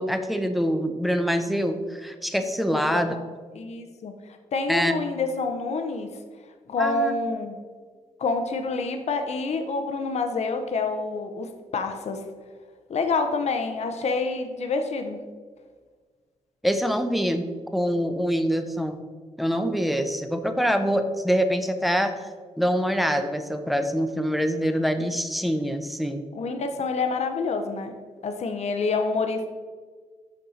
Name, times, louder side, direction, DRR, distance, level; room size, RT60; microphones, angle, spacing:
voice 1, 0.0-3.1 4.7-4.9 6.8-7.1 16.6-17.5 17.7-19.0 19.4-22.2 22.6-26.2, equal, ahead, 7 dB, 0.7 m, -25 dB
voice 2, 2.7-3.2 3.5-4.1 4.5-6.1 6.7-7.5 8.2-12.2 12.9-15.2 26.3-27.9 28.2-29.5, left 3 dB, 55° left, 5 dB, 0.7 m, -27 dB
6.6 x 5.3 x 4.2 m, 1.5 s
cardioid pair, 75°, 13 cm